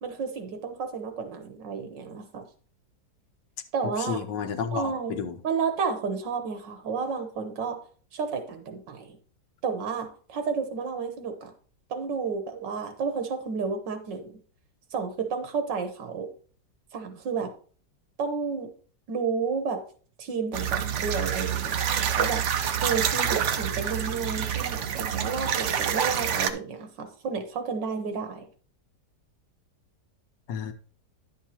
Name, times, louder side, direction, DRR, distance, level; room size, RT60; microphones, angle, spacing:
voice 1, 0.0-2.5 3.7-4.2 4.7-5.2 5.4-7.8 8.1-9.2 9.6-11.5 11.9-14.3 14.9-16.3 16.9-17.5 18.2-18.7 19.1-19.8 20.2-22.5 22.8-28.4, right 5 dB, 80° right, 1.8 m, -31 dB
voice 2, 4.0-5.4 30.5-30.7, left 6 dB, 85° left, 1.5 m, -31 dB
sound 1, 20.5-26.5, right 8 dB, 65° right, 0.7 m, -27 dB
10.5 x 7.3 x 2.9 m
omnidirectional pair, 1.9 m